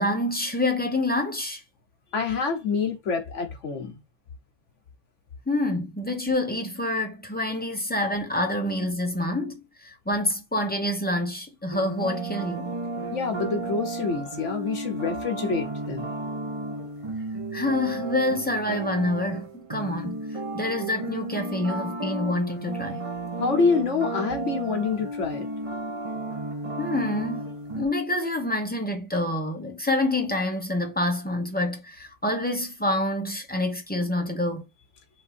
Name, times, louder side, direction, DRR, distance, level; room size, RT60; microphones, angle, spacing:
voice 1, 0.0-1.6 5.5-12.7 17.5-20.2 20.5-23.0 26.8-34.6, left 1 dB, 10° left, 0.7 m, -27 dB
voice 2, 2.1-4.0 13.1-16.3 23.4-25.5, left 5 dB, 70° left, 1.3 m, -27 dB
sound 1, 11.7-27.9, right 2 dB, 30° right, 0.8 m, -33 dB
4.3 x 2.7 x 4.2 m
omnidirectional pair, 1.3 m